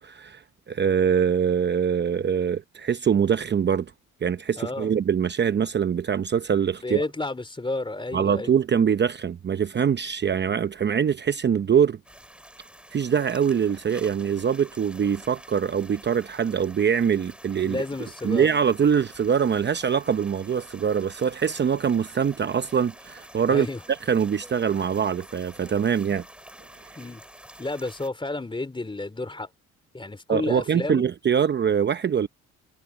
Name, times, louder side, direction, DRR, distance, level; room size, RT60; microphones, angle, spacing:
voice 1, 0.0-3.9 4.2-7.0 8.1-12.0 12.9-17.8 18.2-26.2 30.3-32.3, right 7 dB, 35° right, 0.7 m, -23 dB
voice 2, 4.6-4.9 6.8-8.5 17.6-18.5 23.5-23.8 27.0-27.2 27.6-29.5 29.9-31.1, left 2 dB, 15° left, 3.1 m, -31 dB
sound 1, 12.0-28.1, equal, 5° right, 6.7 m, -48 dB
cardioid pair, 90°, 30 cm